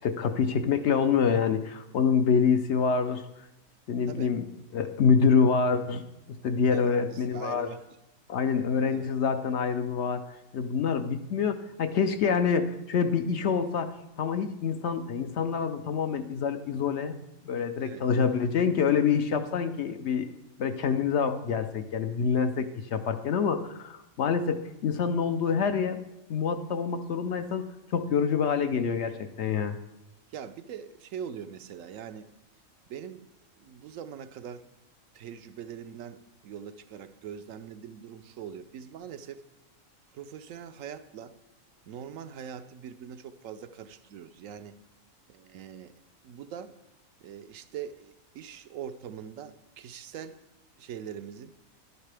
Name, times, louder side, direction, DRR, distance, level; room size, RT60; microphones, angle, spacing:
voice 1, 0.0-3.2 3.9-4.4 4.7-6.0 6.4-7.7 8.3-10.2 10.5-13.9 14.2-17.2 17.5-20.3 20.6-26.0 26.3-27.7 27.9-29.8, left 6 dB, 60° left, 8 dB, 0.8 m, -26 dB
voice 2, 6.7-7.8 8.8-9.1 17.8-18.1 30.3-32.3 32.9-33.3 33.6-34.7 35.1-39.4 40.1-41.3 41.9-44.8 45.3-45.9 46.2-46.7 47.2-50.4 50.8-51.5, right 8 dB, 75° right, 11 dB, 1.0 m, -42 dB
11.5 x 11.0 x 3.3 m, 0.90 s
omnidirectional pair, 1.4 m